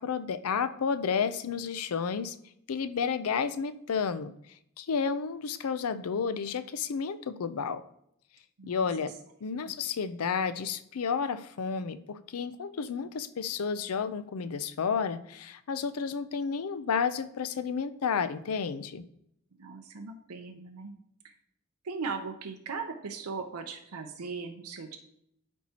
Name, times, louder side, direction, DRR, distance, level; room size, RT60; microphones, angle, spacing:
voice 1, 0.0-2.4 2.7-4.3 4.8-7.8 8.6-9.1 9.4-19.0, left 6 dB, 80° left, 13 dB, 0.5 m, -31 dB
voice 2, 19.6-20.9 21.8-25.0, right 4 dB, 85° right, 4 dB, 0.7 m, -38 dB
12.5 x 4.5 x 2.8 m, 0.74 s
head